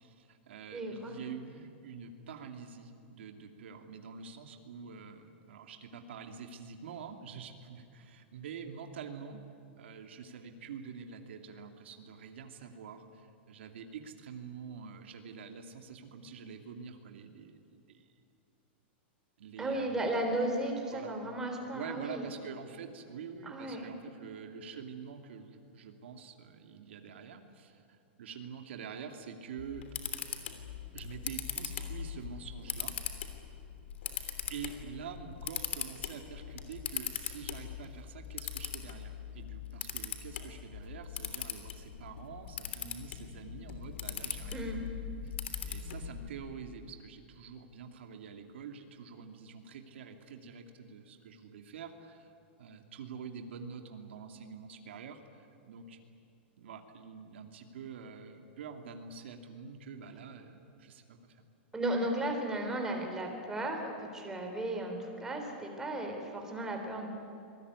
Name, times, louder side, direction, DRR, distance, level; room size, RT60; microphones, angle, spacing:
voice 1, 0.0-9.4 9.8-18.1 19.4-20.1 20.9-21.2 21.7-29.8 30.9-33.0 34.5-44.6 45.2-45.4 45.6-52.3 52.6-56.0 56.6-61.4, right 6 dB, 80° right, 5 dB, 2.5 m, -46 dB
voice 2, 0.7-1.2 19.6-22.3 23.4-23.9 44.5-44.8 61.7-67.1, right 1 dB, 10° right, 2 dB, 3.7 m, -35 dB
Camera, 29.6-46.3, left 8 dB, 85° left, 3.2 m, -40 dB
26.0 x 19.5 x 9.7 m, 2.6 s
supercardioid pair, 160°, 6 cm